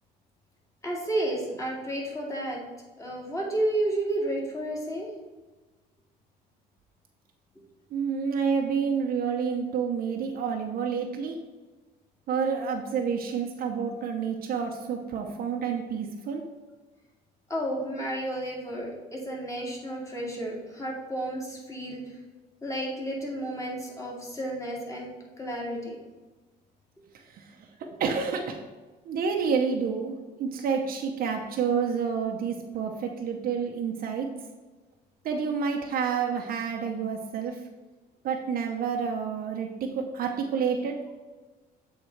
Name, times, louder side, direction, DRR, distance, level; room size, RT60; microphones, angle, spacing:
voice 1, 0.8-2.6 3.0-5.1 9.6-9.7 17.5-22.0 22.6-25.1 25.4-26.0, right 1 dB, 20° left, -3 dB, 2.2 m, -31 dB
voice 2, 7.9-11.4 12.3-16.4 27.1-27.7 28.0-28.6 29.1-34.3 35.2-37.6 38.2-39.7 39.9-41.0, right 6 dB, 60° right, 2 dB, 0.7 m, -29 dB
7.9 x 3.7 x 4.4 m, 1.3 s
cardioid pair, 110°, 17 cm